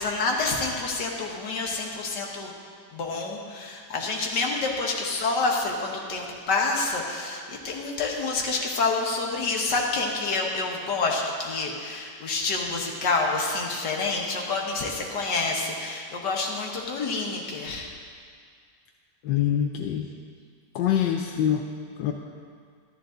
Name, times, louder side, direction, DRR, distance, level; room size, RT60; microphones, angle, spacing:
voice 1, 0.0-2.5 2.9-17.9, left 3 dB, 75° left, 0 dB, 2.0 m, -28 dB
voice 2, 19.2-20.1 20.7-21.7 22.0-22.1, left 10 dB, 90° left, 3 dB, 1.3 m, -24 dB
13.0 x 12.0 x 3.8 m, 2.1 s
omnidirectional pair, 1.9 m